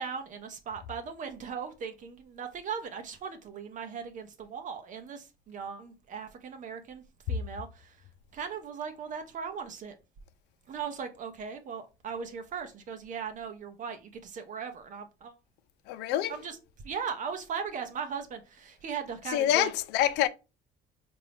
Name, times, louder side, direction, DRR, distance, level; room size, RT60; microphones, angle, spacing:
voice 1, 0.0-8.0 8.3-10.0 10.7-15.3 16.3-16.5 16.8-19.7, right 6 dB, 50° right, 0.7 m, -38 dB
voice 2, 15.9-16.3 19.3-20.3, left 12 dB, 90° left, 0.4 m, -26 dB
4.5 x 2.6 x 3.4 m
cardioid pair, 110°, 17 cm